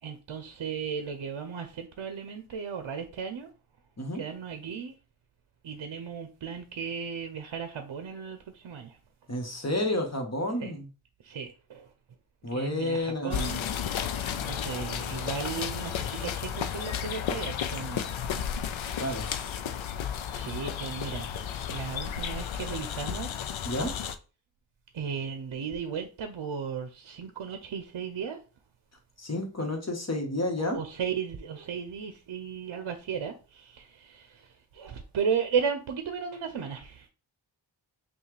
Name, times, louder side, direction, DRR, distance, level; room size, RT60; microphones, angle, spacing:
voice 1, 0.0-3.5 4.1-4.9 5.6-9.0 10.6-10.7 11.2-11.9 12.5-13.6 14.1-18.2 20.1-23.3 24.9-28.4 30.6-37.1, right 6 dB, 65° right, 0.6 m, -35 dB
voice 2, 9.3-10.9 12.4-13.6 19.0-19.6 23.6-23.9 29.2-30.8, left 1 dB, 30° left, 1.3 m, -31 dB
sound 1, 13.3-24.2, left 8 dB, 70° left, 0.5 m, -33 dB
5.5 x 2.4 x 3.2 m
cardioid pair, 45°, 48 cm